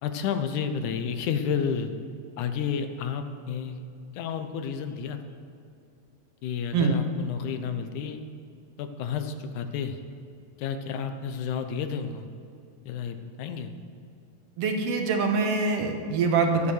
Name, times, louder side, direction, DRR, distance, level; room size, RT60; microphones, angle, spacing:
voice 1, 0.0-2.0 2.4-3.8 4.1-5.2 6.4-8.3 8.8-10.0 10.6-12.3 12.9-13.8, left 7 dB, 80° left, 8 dB, 2.2 m, -31 dB
voice 2, 14.6-16.7, right 4 dB, 60° right, 4 dB, 1.9 m, -24 dB
13.0 x 8.5 x 6.4 m, 2.5 s
omnidirectional pair, 3.6 m